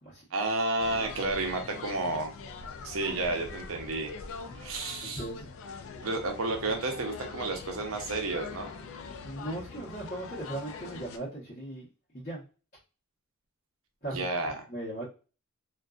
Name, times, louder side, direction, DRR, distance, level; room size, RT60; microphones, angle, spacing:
voice 1, 0.3-2.3 2.8-4.1 4.5-5.2 6.0-8.7 14.1-14.6, right 2 dB, 70° right, 3 dB, 0.7 m, -31 dB
sound 1, 0.8-11.2, left 5 dB, 65° left, 0.4 m, -43 dB
voice 2, 5.0-5.5 9.2-11.9 12.1-12.4 14.0-15.0, right 1 dB, 40° left, -8 dB, 1.0 m, -38 dB
2.5 x 2.3 x 2.3 m, 0.34 s
head